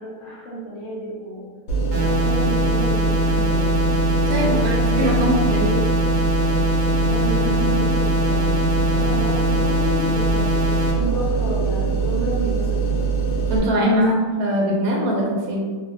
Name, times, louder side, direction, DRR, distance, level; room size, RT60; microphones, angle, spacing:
voice 1, 0.0-1.5 1.9-3.7 4.3-5.4 7.0-8.6 8.9-10.6 10.9-13.0 14.0-14.1, right 1 dB, 60° left, -6 dB, 1.0 m, -30 dB
sound 1, 1.7-13.6, right 5 dB, 85° left, 1.2 m, -22 dB
sound 2, 1.9-10.9, left 3 dB, 50° right, 0.6 m, -23 dB
voice 2, 4.2-5.9 13.5-15.8, equal, 75° right, -2 dB, 1.0 m, -22 dB
2.7 x 2.4 x 2.5 m, 1.5 s
omnidirectional pair, 1.7 m